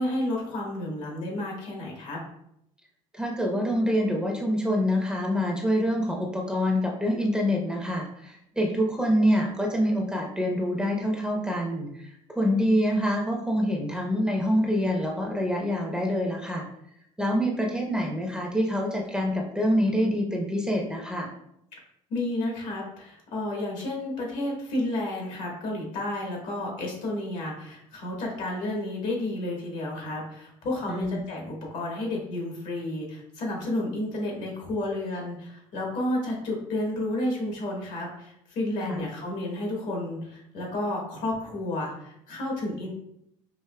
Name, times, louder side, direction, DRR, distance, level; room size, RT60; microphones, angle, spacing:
voice 1, 0.0-2.2 22.1-42.9, left 1 dB, 65° left, -1 dB, 1.4 m, -31 dB
voice 2, 3.1-16.6 17.2-21.3 30.8-31.2 38.8-39.0, equal, 5° right, 0 dB, 0.7 m, -26 dB
4.9 x 2.6 x 2.2 m, 0.76 s
supercardioid pair, 90°, 14 cm